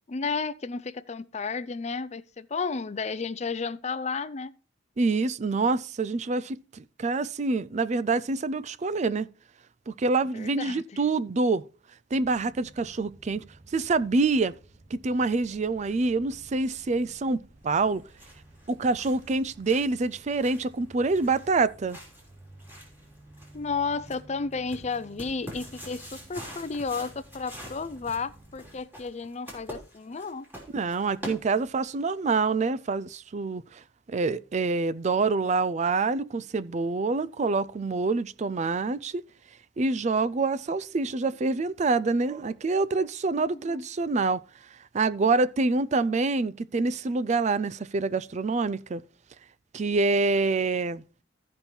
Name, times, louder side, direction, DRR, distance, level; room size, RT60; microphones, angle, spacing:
voice 1, 0.1-4.5 10.3-11.0 23.5-30.5 43.3-43.8, left 4 dB, 35° left, 0.5 m, -33 dB
voice 2, 5.0-9.3 9.9-11.6 12.1-13.4 13.7-14.6 14.9-18.0 18.7-22.0 30.7-33.8 34.1-39.2 39.8-44.4 44.9-49.0 49.7-51.0, right 3 dB, 35° right, 0.4 m, -26 dB
sound 1, 12.1-28.8, right 1 dB, 60° right, 3.4 m, -53 dB
sound 2, 17.8-32.0, equal, 10° right, 3.1 m, -46 dB
14.0 x 5.3 x 4.4 m
head